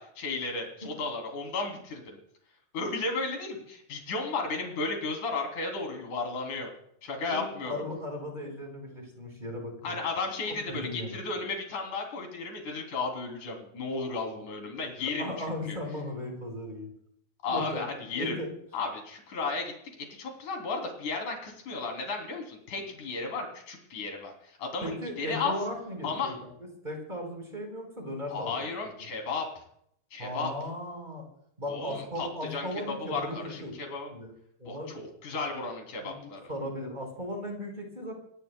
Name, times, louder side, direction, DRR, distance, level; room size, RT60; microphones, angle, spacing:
voice 1, 0.0-2.2 2.7-6.7 7.0-7.8 9.8-15.8 17.4-18.4 18.7-19.7 20.1-25.6 26.0-26.3 28.3-29.5 30.1-30.5 31.7-34.1 34.6-36.5, left 3 dB, 45° left, 2 dB, 4.2 m, -34 dB
voice 2, 7.3-10.0 10.7-11.2 15.0-16.9 17.5-17.8 18.1-18.5 24.8-26.3 26.8-28.6 30.2-31.2 31.6-33.7 34.1-34.3 34.6-34.9 36.0-38.2, left 1 dB, 10° right, 1 dB, 4.1 m, -37 dB
26.5 x 18.0 x 2.2 m, 0.72 s
omnidirectional pair, 5.0 m